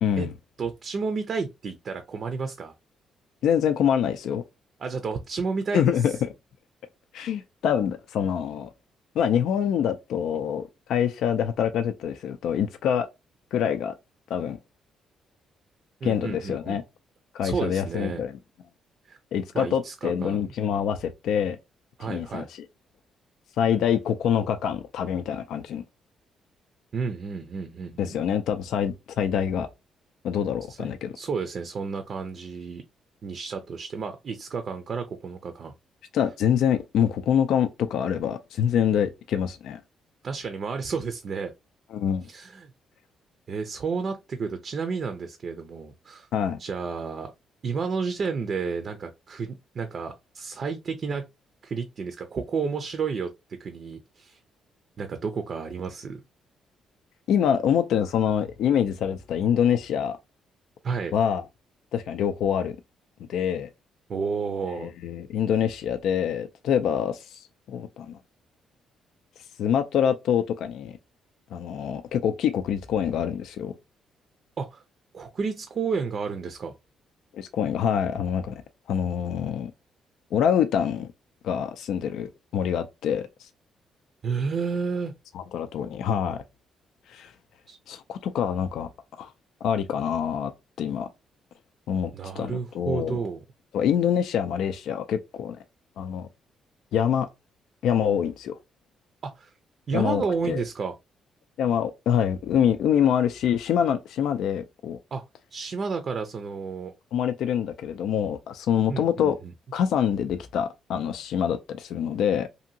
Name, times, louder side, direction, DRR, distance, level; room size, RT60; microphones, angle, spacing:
voice 1, 0.0-0.3 3.4-4.4 5.7-6.1 7.1-8.7 9.2-13.1 13.5-13.9 14.3-14.6 16.0-16.8 17.3-18.4 19.3-21.6 22.0-22.7 23.6-25.8 28.0-29.7 30.2-31.1 36.1-39.8 41.9-42.3 46.3-46.6 57.3-60.2 61.1-61.5 61.9-62.8 63.3-63.7 64.7-68.2 69.6-70.9 71.5-73.7 77.3-78.5 78.9-79.7 80.3-81.1 81.4-83.5 85.3-86.4 87.1-87.3 87.9-88.9 89.2-89.3 89.6-90.5 90.8-91.1 91.9-93.2 93.7-95.6 96.0-96.3 96.9-97.3 97.8-98.6 99.9-100.6 101.6-105.0 107.1-109.4 109.7-112.5, left 8 dB, 80° left, 0.3 m, -25 dB
voice 2, 0.6-2.7 4.8-5.9 16.0-16.8 17.4-18.2 19.1-19.2 19.5-20.5 22.0-22.5 26.9-28.1 30.7-32.8 33.2-35.7 40.2-41.5 42.3-42.7 43.5-46.3 46.6-47.3 47.6-51.3 51.6-53.3 53.6-54.4 55.0-56.2 60.8-61.1 64.1-64.9 74.6-74.8 75.1-76.7 84.2-85.1 87.7-87.8 92.1-93.4 99.2-99.5 99.9-100.9 105.1-105.2 105.5-106.9 108.9-109.3, right 5 dB, 50° right, 0.5 m, -31 dB
2.8 x 2.6 x 2.6 m
cardioid pair, 90°, 0 cm